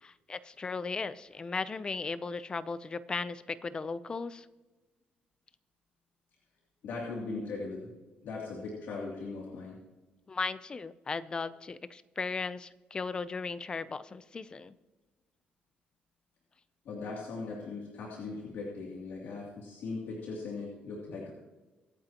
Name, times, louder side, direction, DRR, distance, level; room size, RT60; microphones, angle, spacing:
voice 1, 0.0-4.5 10.3-14.7, left 4 dB, 25° left, 15 dB, 0.6 m, -36 dB
voice 2, 6.8-7.9 8.2-9.8 16.8-21.3, left 3 dB, 70° left, -4 dB, 2.9 m, -39 dB
24.5 x 9.0 x 3.0 m, 1.2 s
cardioid pair, 140°, 3 cm